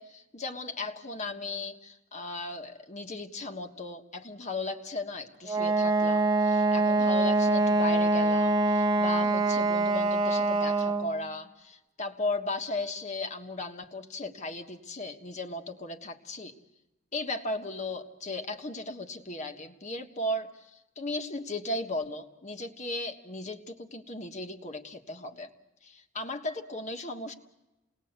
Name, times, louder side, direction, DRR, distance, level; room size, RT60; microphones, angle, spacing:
voice 1, 0.0-16.5 17.1-25.5 25.8-27.3, left 2 dB, 35° left, 6 dB, 1.5 m, -36 dB
Wind instrument woodwind instrument, 5.5-11.2, right 2 dB, 20° right, 1.3 m, -24 dB
28.5 x 19.5 x 8.1 m, 1.1 s
head